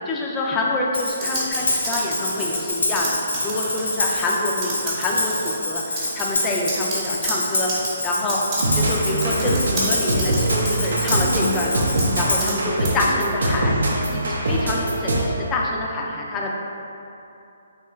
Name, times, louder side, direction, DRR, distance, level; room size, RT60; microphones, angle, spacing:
voice 1, 0.1-8.4 8.7-11.8 12.2-13.7 14.1-16.5, left 2 dB, 20° left, -2 dB, 0.4 m, -26 dB
Tambourine, 0.9-12.6, left 2 dB, 80° left, 0.6 m, -27 dB
sound 1, 1.1-4.3 4.6-5.5 5.9-12.6 12.8-13.1, right 2 dB, 35° right, 0.9 m, -30 dB
sound 2, 8.6-15.5, right 1 dB, 75° right, 0.4 m, -23 dB
3.3 x 2.9 x 2.3 m, 2.8 s
figure-of-eight pair, 140°, 0 cm